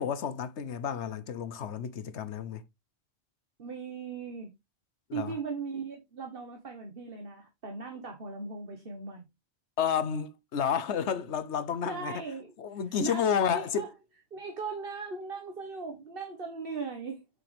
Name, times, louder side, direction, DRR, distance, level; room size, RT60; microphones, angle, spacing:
voice 1, 0.0-2.6 5.1-5.3 9.8-12.2 12.6-13.8, left 7 dB, 90° left, 1.2 m, -31 dB
voice 2, 3.6-4.5 5.1-9.2 11.8-13.9 14.3-17.2, right 5 dB, 55° right, 1.6 m, -38 dB
7.5 x 6.3 x 3.4 m
omnidirectional pair, 1.1 m